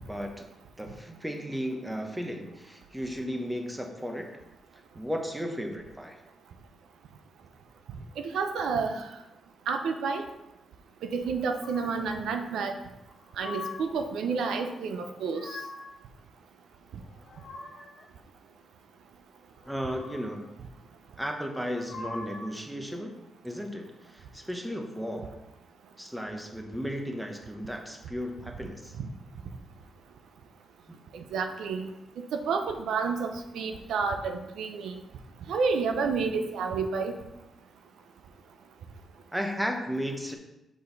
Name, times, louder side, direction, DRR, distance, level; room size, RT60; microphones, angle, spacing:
voice 1, 0.1-0.5 0.8-4.3 5.0-6.2 19.7-20.5 21.2-23.1 23.4-25.4 26.0-29.0 30.9-31.0 39.3-40.4, equal, 5° right, 3 dB, 1.0 m, -34 dB
voice 2, 8.3-9.1 9.7-10.2 11.1-12.7 13.4-15.5 29.0-29.1 31.1-31.9 32.2-34.9 35.5-37.1, right 5 dB, 90° right, 6 dB, 0.6 m, -30 dB
sound 1, 11.6-12.2 13.0-14.0 15.0-16.0 16.9-18.1 19.6-20.5 21.6-22.6, left 3 dB, 55° left, 2.3 m, -43 dB
6.2 x 5.4 x 4.0 m, 0.94 s
cardioid pair, 110°, 0 cm